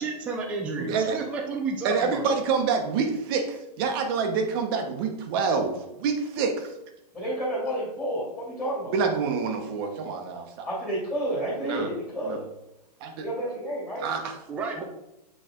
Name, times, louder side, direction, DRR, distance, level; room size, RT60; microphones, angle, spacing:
voice 1, 0.0-2.3 14.5-14.8, right 4 dB, 5° right, 1 dB, 0.3 m, -31 dB
voice 2, 0.8-1.2 1.8-6.7 8.9-10.7 11.6-11.9 12.2-12.4 13.0-13.2 14.0-14.3, right 5 dB, 35° right, 4 dB, 0.9 m, -27 dB
voice 3, 7.1-8.9 10.6-12.4 13.2-14.1, right 1 dB, 10° left, -9 dB, 2.3 m, -30 dB
7.6 x 3.3 x 3.7 m, 0.89 s
hypercardioid pair, 155°, 21 cm